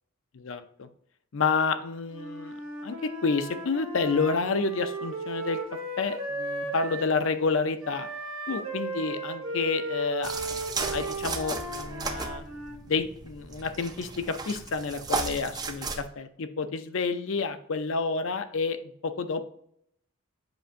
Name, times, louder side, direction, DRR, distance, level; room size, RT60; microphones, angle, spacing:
voice 1, 0.3-0.9 1.3-2.5 2.8-5.6 6.0-8.1 8.5-10.4 10.9-12.4 12.9-19.4, left 4 dB, 70° left, 10 dB, 0.5 m, -29 dB
Wind instrument woodwind instrument, 2.1-7.1 7.8-12.8, right 2 dB, 85° right, 1.5 m, -36 dB
sound 1, 10.2-16.0, right 4 dB, 20° right, 0.4 m, -35 dB
7.8 x 5.5 x 2.5 m, 0.69 s
head